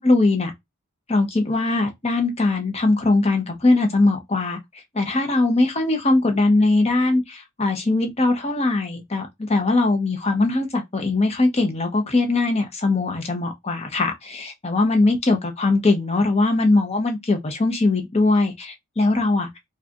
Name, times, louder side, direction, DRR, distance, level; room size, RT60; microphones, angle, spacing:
voice 1, 0.0-0.5 1.1-4.6 4.9-19.5, left 2 dB, 30° left, 0.9 m, -21 dB
4.8 x 2.5 x 2.9 m
head